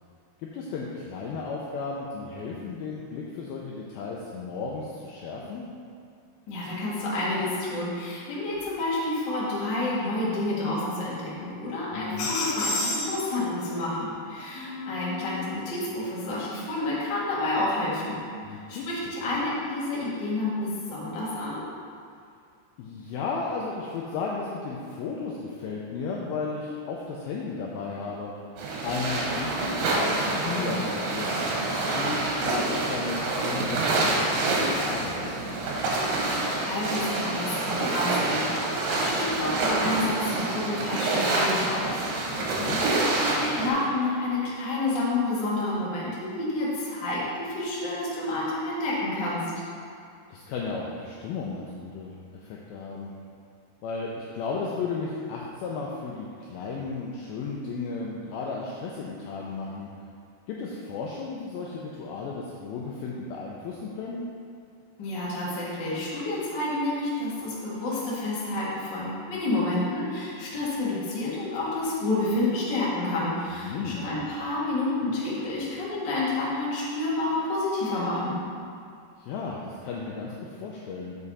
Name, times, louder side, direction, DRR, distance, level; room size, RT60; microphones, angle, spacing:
voice 1, 0.4-5.7 11.9-12.3 18.4-19.1 22.8-28.3 28.8-31.3 31.9-35.7 42.4-42.8 50.3-52.2 52.4-53.1 53.8-59.9 60.5-64.2 73.5-74.3 79.2-81.2, left 4 dB, 80° left, -3 dB, 2.2 m, -34 dB
voice 2, 6.5-18.2 18.5-21.6 36.5-49.5 65.0-78.4, left 2 dB, 50° left, -8 dB, 1.3 m, -29 dB
sound 1, 12.2-13.9 14.6-15.7, left 2 dB, 65° left, 2.4 m, -32 dB
sound 2, 28.6-43.7, right 2 dB, 75° right, 3.0 m, -27 dB
7.1 x 6.5 x 4.1 m, 2.4 s
omnidirectional pair, 4.9 m